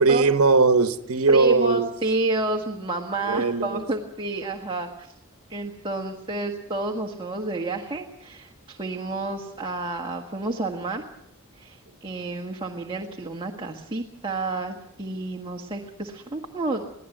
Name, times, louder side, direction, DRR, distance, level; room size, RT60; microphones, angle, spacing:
voice 1, 0.0-1.9 3.2-3.8, right 4 dB, 80° right, 10 dB, 1.2 m, -19 dB
voice 2, 1.3-5.1 5.5-11.0 11.5-16.8, right 2 dB, 25° right, 1 dB, 1.6 m, -30 dB
23.0 x 16.0 x 9.1 m, 0.84 s
head